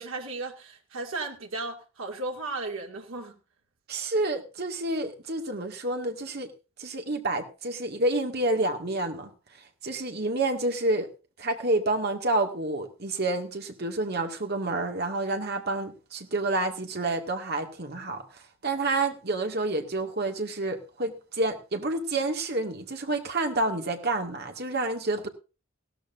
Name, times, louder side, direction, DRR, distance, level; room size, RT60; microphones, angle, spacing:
voice 1, 0.0-3.4, right 3 dB, 85° right, 2.3 m, -35 dB
voice 2, 3.9-6.5 6.8-9.3 9.8-11.1 11.4-25.3, right 2 dB, 50° right, 2.0 m, -29 dB
17.0 x 13.0 x 2.6 m
head